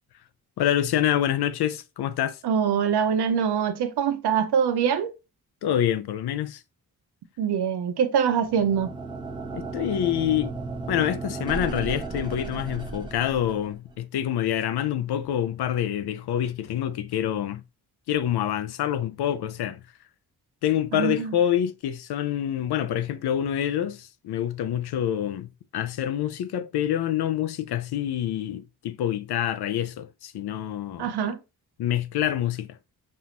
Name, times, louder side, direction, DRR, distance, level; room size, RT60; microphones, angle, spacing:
voice 1, 0.6-2.4 5.6-6.6 9.5-10.5 10.9-17.6 18.1-19.8 20.6-31.1 31.8-32.8, left 11 dB, 80° left, 0.6 m, -26 dB
voice 2, 2.4-5.1 7.4-8.9 20.9-21.3 31.0-31.4, right 7 dB, 80° right, 0.7 m, -24 dB
sound 1, 8.3-13.9, right 3 dB, 10° right, 0.9 m, -35 dB
5.5 x 2.5 x 2.8 m
cardioid pair, 105°, 38 cm